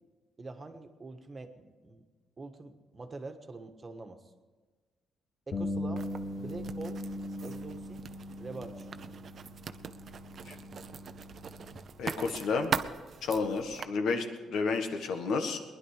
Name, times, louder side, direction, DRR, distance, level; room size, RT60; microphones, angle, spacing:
voice 1, 0.4-2.0 2.4-4.2 5.5-6.1 6.3-7.0 7.4-8.0 8.4-8.9, right 3 dB, 30° right, 6 dB, 1.5 m, -44 dB
Bass guitar, 5.5-11.8, left 1 dB, 55° left, 2.2 m, -40 dB
Writing, 6.0-13.8, right 6 dB, 50° right, 0.6 m, -41 dB
voice 2, 12.0-12.7 13.2-15.6, left 4 dB, 75° left, 6 dB, 1.6 m, -31 dB
20.0 x 11.0 x 5.1 m, 1.4 s
cardioid pair, 90°, 0 cm